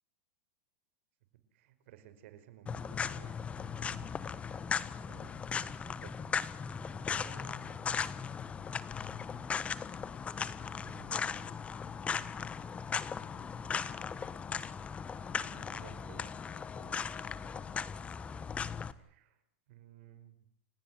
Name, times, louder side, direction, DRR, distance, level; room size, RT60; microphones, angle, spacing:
voice 1, 1.5-4.2 5.1-6.3 7.1-7.8 10.8-11.4 15.1-17.8 18.2-18.5 18.9-19.4 19.7-20.4, right 10 dB, 70° right, 12 dB, 5.1 m, -57 dB
sound 1, 2.7-18.9, left 6 dB, 20° left, 1.4 m, -38 dB
30.0 x 17.0 x 9.6 m, 0.62 s
supercardioid pair, 145°, 7 cm